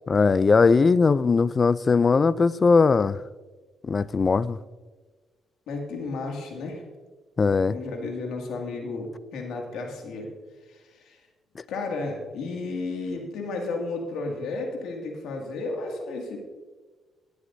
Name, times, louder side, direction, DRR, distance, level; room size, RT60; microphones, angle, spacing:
voice 1, 0.1-3.2 3.8-4.6 7.4-7.7, left 4 dB, 35° left, 0.4 m, -20 dB
voice 2, 5.7-6.8 7.6-10.3 10.7-11.2 11.7-16.4, left 3 dB, 85° left, 2.2 m, -33 dB
21.5 x 8.2 x 2.7 m
cardioid pair, 90°, 0 cm